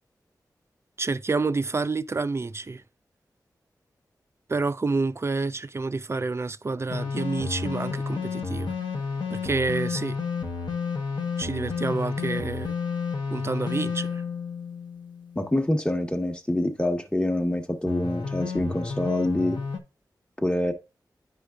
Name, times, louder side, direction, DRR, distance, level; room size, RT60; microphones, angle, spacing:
voice 1, 1.0-2.8 4.5-8.7 9.3-10.2 11.4-12.8 13.3-14.2, right 3 dB, 35° right, 0.4 m, -28 dB
sound 1, 6.9-15.5 17.9-19.8, left 5 dB, 80° left, 1.0 m, -31 dB
voice 2, 15.3-19.6 20.4-20.7, left 1 dB, 10° left, 1.2 m, -26 dB
9.6 x 5.0 x 2.4 m
cardioid pair, 45°, 7 cm